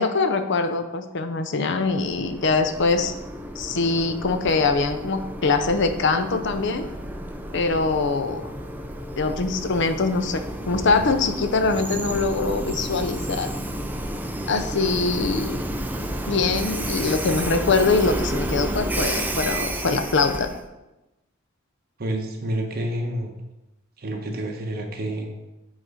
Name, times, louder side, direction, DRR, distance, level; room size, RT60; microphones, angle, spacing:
voice 1, 0.0-3.1 3.6-6.9 7.5-8.5 9.2-13.5 14.5-15.6 16.3-20.5, left 3 dB, 60° left, 8 dB, 0.6 m, -23 dB
Train, 1.9-20.6, right 1 dB, 10° right, 0.5 m, -31 dB
voice 2, 22.0-23.3 24.0-25.3, right 1 dB, 50° right, 2 dB, 1.1 m, -28 dB
7.8 x 4.1 x 4.9 m, 1.0 s
head